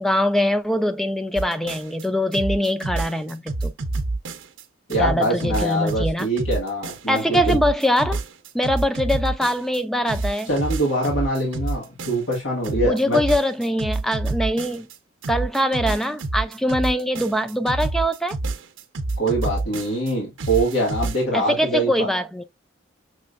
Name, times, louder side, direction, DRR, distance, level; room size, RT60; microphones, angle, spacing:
voice 1, 0.0-3.7 5.0-6.3 7.1-8.2 8.5-10.5 12.8-14.9 15.3-18.4 21.3-22.4, equal, ahead, 0.4 m, -23 dB
sound 1, 1.4-2.0 2.3-4.6 4.9-9.8 10.1-12.4 12.6-15.0 15.2-20.1 20.4-21.2, right 2 dB, 75° right, 0.7 m, -28 dB
voice 2, 4.9-7.6 10.5-13.2 19.2-22.1, right 1 dB, 85° left, 1.8 m, -24 dB
6.1 x 3.3 x 2.5 m
head